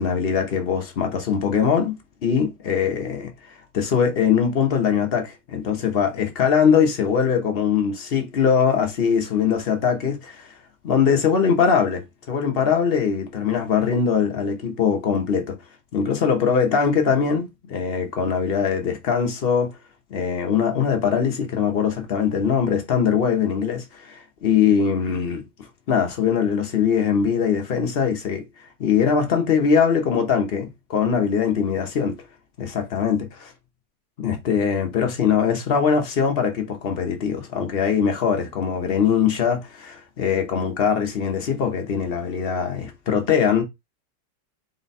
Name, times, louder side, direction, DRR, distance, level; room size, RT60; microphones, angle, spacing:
voice 1, 0.0-1.9 2.2-10.5 10.8-15.6 15.9-19.7 20.1-25.4 25.9-28.4 28.8-32.2 32.6-33.5 34.2-43.6, left 7 dB, 50° left, 0.7 m, -22 dB
4.1 x 2.2 x 4.0 m
omnidirectional pair, 1.8 m